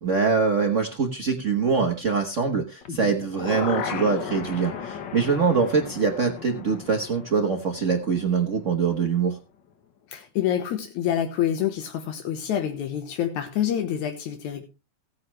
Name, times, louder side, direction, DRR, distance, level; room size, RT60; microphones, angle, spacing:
voice 1, 0.0-9.4, right 5 dB, 65° right, 0.7 m, -24 dB
sound 1, 2.8-8.8 9.2-9.3, left 6 dB, 55° left, 1.3 m, -35 dB
voice 2, 10.1-14.7, left 10 dB, 80° left, 2.5 m, -27 dB
15.5 x 9.6 x 3.1 m
omnidirectional pair, 3.3 m